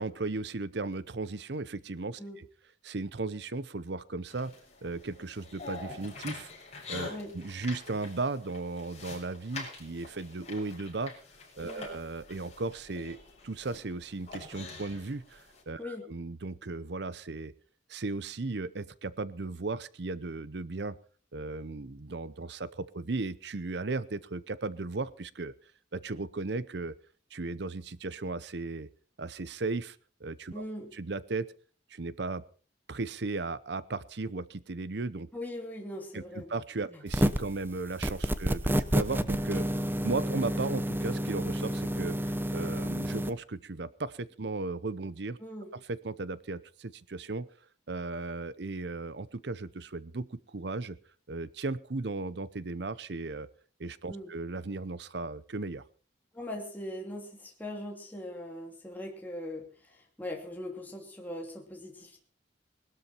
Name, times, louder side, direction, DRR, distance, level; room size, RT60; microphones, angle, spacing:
voice 1, 0.0-2.5 2.8-4.5 4.8-6.5 6.9-11.1 11.6-13.2 13.4-17.5 17.9-21.0 21.3-25.5 25.9-26.9 27.3-28.9 29.2-30.0 30.2-30.6 30.9-31.5 31.9-32.4 32.9-35.3 36.1-45.4 45.9-47.5 47.9-51.0 51.3-53.5 53.8-55.8, right 3 dB, 60° right, 17 dB, 0.7 m, -36 dB
sound 1, 4.3-15.6, left 3 dB, 35° left, 6.5 m, -46 dB
voice 2, 30.5-30.9 35.3-36.5 36.9-37.0 45.4-45.7 54.1-54.3 56.3-62.2, left 1 dB, 10° left, 0 dB, 2.7 m, -40 dB
sound 2, 37.1-37.5 38.0-43.3, equal, 10° right, 0.9 m, -29 dB
20.5 x 12.5 x 4.4 m, 0.40 s
head